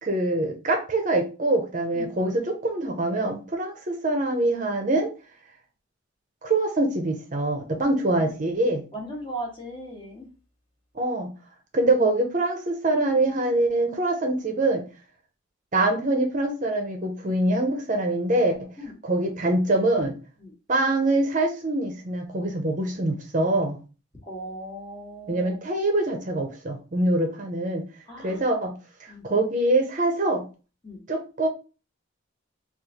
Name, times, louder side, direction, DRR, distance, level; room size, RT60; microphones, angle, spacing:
voice 1, 0.0-5.1 6.4-8.8 10.9-11.3 11.7-14.8 15.7-18.7 19.0-20.2 20.7-23.8 25.3-27.8 28.2-28.7 29.0-30.4 31.1-31.5, right 2 dB, 40° right, 4 dB, 0.6 m, -24 dB
voice 2, 8.9-10.3 18.8-18.9 20.4-20.5 24.2-25.6 28.1-28.4 29.1-29.2 30.8-31.0, right 1 dB, 25° left, -2 dB, 1.0 m, -37 dB
3.0 x 2.4 x 3.6 m, 0.33 s
head